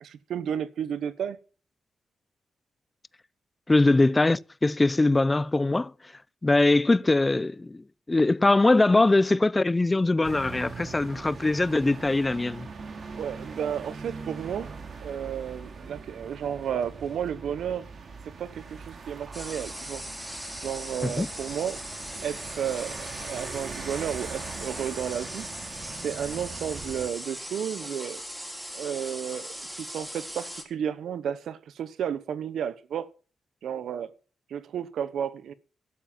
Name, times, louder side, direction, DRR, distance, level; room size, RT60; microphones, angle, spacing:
voice 1, 0.0-1.4 13.1-14.7 15.0-17.9 18.4-20.0 20.6-21.8 22.2-25.4 25.9-28.2 28.7-33.1 33.6-34.1 34.5-35.5, right 8 dB, 85° right, 0.9 m, -32 dB
voice 2, 3.7-5.9 6.4-12.7 21.0-21.3, left 2 dB, 25° left, 0.5 m, -22 dB
sound 1, 10.2-27.1, right 4 dB, 55° right, 2.7 m, -41 dB
sound 2, 19.3-30.6, equal, 10° right, 4.5 m, -39 dB
13.0 x 7.2 x 7.3 m
cardioid pair, 75°, 0 cm